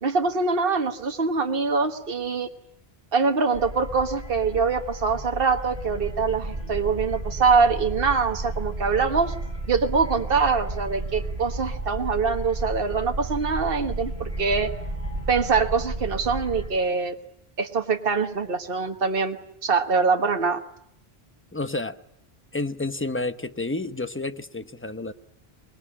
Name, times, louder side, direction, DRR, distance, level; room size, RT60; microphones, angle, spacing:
voice 1, 0.0-2.5 3.1-9.3 9.7-14.7 15.3-17.2 17.6-20.6, right 4 dB, 60° right, 5 dB, 1.7 m, -24 dB
sound 1, 3.5-16.7, right 2 dB, 45° right, 6.7 m, -33 dB
voice 2, 21.5-22.0 22.5-25.1, left 2 dB, 15° left, 10 dB, 0.9 m, -30 dB
24.0 x 21.5 x 9.9 m, 0.72 s
omnidirectional pair, 1.1 m